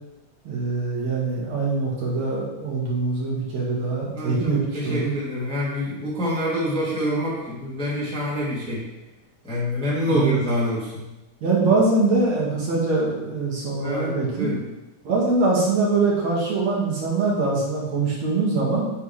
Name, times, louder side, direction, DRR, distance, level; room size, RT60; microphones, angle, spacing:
voice 1, 0.4-5.1 10.1-10.4 11.4-14.5 15.0-18.9, right 3 dB, 60° right, -4 dB, 3.0 m, -23 dB
voice 2, 4.1-8.9 9.4-11.1 13.8-14.6, equal, ahead, -7 dB, 2.0 m, -26 dB
9.8 x 7.1 x 3.3 m, 0.97 s
omnidirectional pair, 3.6 m